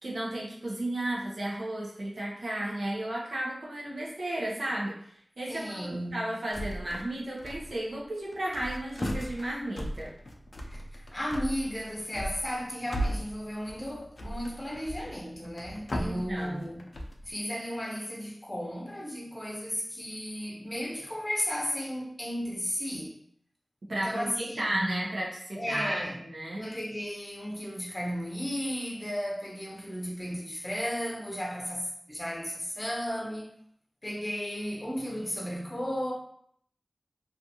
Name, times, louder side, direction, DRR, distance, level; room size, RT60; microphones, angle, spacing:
voice 1, 0.0-4.9 5.4-10.1 16.0-16.7 23.9-26.7, right 1 dB, 90° right, 0.6 m, -34 dB
voice 2, 5.5-6.3 10.7-17.0 17.3-23.1 23.9-25.1 25.5-26.2 26.6-33.5 34.0-36.1, equal, 20° left, 0.6 m, -34 dB
sound 1, 6.5-7.1 7.4-8.0 8.3-17.3, equal, 70° left, 0.3 m, -37 dB
2.4 x 2.4 x 2.7 m
wide cardioid pair, 70°, 0 cm